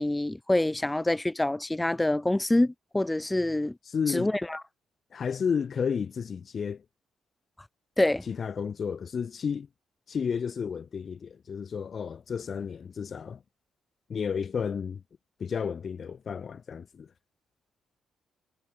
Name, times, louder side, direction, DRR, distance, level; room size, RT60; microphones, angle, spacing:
voice 1, 0.0-3.7 4.1-4.6 8.0-8.2, left 1 dB, 10° left, 1.5 m, -26 dB
voice 2, 3.8-4.3 5.1-6.8 8.2-9.7 10.1-13.4 14.1-15.0 15.4-17.1, left 6 dB, 45° left, 0.7 m, -32 dB
cardioid pair, 90°, 0 cm